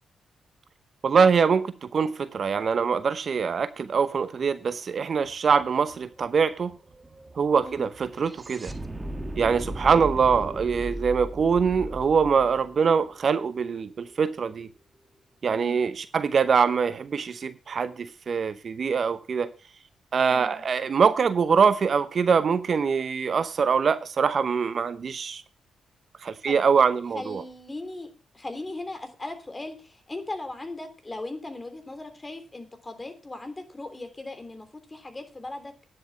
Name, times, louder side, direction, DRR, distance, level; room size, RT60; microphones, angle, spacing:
voice 1, 1.0-6.7 7.4-8.7 9.4-14.7 15.4-19.5 20.1-25.4 26.2-27.4, right 6 dB, 55° right, 0.8 m, -23 dB
sound 1, 5.3-5.4 5.6-13.8, right 1 dB, 25° right, 1.7 m, -37 dB
voice 2, 20.3-20.6 26.4-26.6 27.1-35.7, left 2 dB, 25° left, 3.3 m, -38 dB
10.0 x 7.7 x 6.2 m
hypercardioid pair, 40°, 0 cm